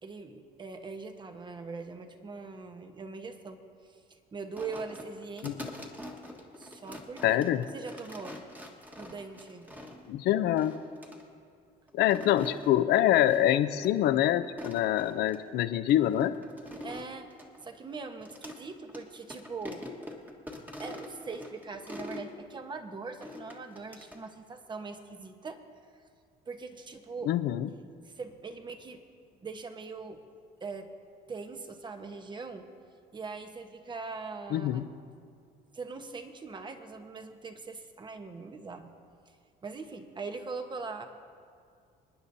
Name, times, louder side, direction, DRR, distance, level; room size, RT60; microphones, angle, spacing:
voice 1, 0.0-5.6 6.6-7.4 7.7-8.4 8.9-9.7 16.8-17.3 17.6-19.9 20.8-25.6 25.9-26.0 26.4-27.3 28.0-29.0 29.4-30.2 30.6-30.9 31.3-32.7 33.1-34.9 35.7-38.9 39.3-39.4 39.6-41.1, right 4 dB, 25° right, 7 dB, 1.0 m, -41 dB
sound 1, 4.6-10.1 10.6-11.2 11.9-12.7 13.3-13.6 13.8-13.9 14.4-15.4 15.9-18.6 18.9-19.0 19.3-22.3 23.2-24.2, left 1 dB, 10° right, 1.4 m, -44 dB
voice 2, 7.2-7.6 10.1-10.7 11.9-16.3 27.3-27.7 34.5-34.9, left 12 dB, 75° left, 12 dB, 0.6 m, -25 dB
28.0 x 10.0 x 2.7 m, 2.2 s
cardioid pair, 110°, 17 cm